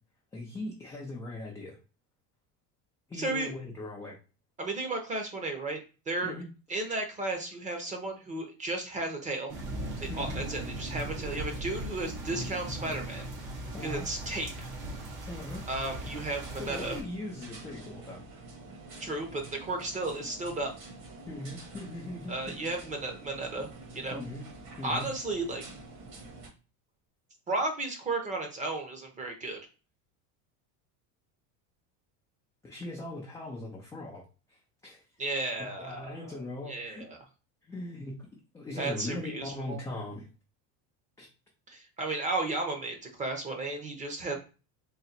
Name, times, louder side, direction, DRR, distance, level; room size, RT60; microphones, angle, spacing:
voice 1, 0.3-1.8 3.1-4.2 6.2-6.4 10.1-10.4 11.5-11.6 13.7-14.1 15.3-15.6 16.6-18.2 21.3-22.6 24.1-24.5 24.8-25.1 32.6-34.2 34.5-34.6 34.8-35.0 35.8-37.1 37.6-38.3 38.5-40.3 41.2-41.3, left 2 dB, 10° left, -3 dB, 0.3 m, -39 dB
voice 2, 3.2-3.5 4.6-6.3 6.7-9.5 10.0-13.3 13.8-14.7 15.7-17.0 19.0-20.7 22.3-23.7 23.9-24.2 24.8-25.6 27.5-29.6 35.2-37.2 38.8-39.8 41.7-44.3, right 2 dB, 15° right, 4 dB, 0.8 m, -34 dB
sound 1, 9.5-17.0, right 1 dB, 70° right, 1.7 m, -38 dB
sound 2, 15.9-26.5, right 2 dB, 50° right, 1.5 m, -47 dB
3.9 x 2.1 x 4.2 m, 0.33 s
cardioid pair, 155°, 43 cm